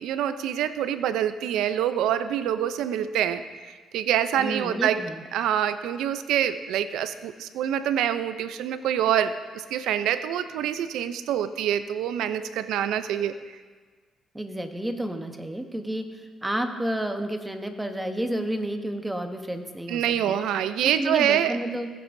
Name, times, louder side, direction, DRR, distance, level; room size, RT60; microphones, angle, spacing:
voice 1, 0.0-5.0 5.3-13.3 19.9-21.6, right 10 dB, 85° right, 12 dB, 0.5 m, -26 dB
voice 2, 4.4-5.2 14.3-20.4 20.8-21.9, right 1 dB, 10° right, 6 dB, 1.0 m, -31 dB
15.5 x 8.6 x 2.6 m, 1.4 s
cardioid pair, 90°, 0 cm